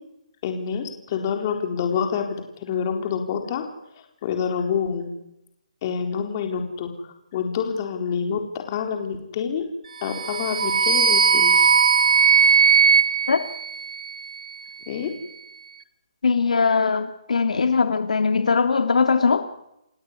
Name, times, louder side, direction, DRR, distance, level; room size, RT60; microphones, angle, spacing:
voice 1, 0.4-2.3 2.6-3.6 4.2-5.1 5.8-8.4 8.7-9.7 10.0-11.7 14.9-15.1, left 7 dB, 30° left, 4 dB, 4.1 m, -27 dB
sound 1, 10.0-14.3, right 6 dB, 70° right, 1.6 m, -18 dB
voice 2, 16.2-19.4, left 5 dB, 75° left, 8 dB, 2.6 m, -20 dB
29.5 x 16.5 x 9.8 m, 0.85 s
hypercardioid pair, 170°, 4 cm